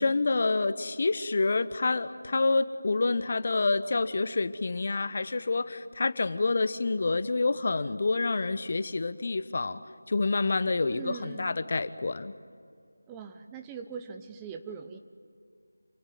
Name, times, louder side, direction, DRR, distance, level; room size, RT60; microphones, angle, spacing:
voice 1, 0.0-9.8 10.1-12.3, left 3 dB, 45° left, 14 dB, 1.0 m, -28 dB
voice 2, 10.9-11.5 13.1-15.0, right 6 dB, 10° right, 6 dB, 0.7 m, -41 dB
27.5 x 17.5 x 9.3 m, 2.2 s
figure-of-eight pair, 165°, 0 cm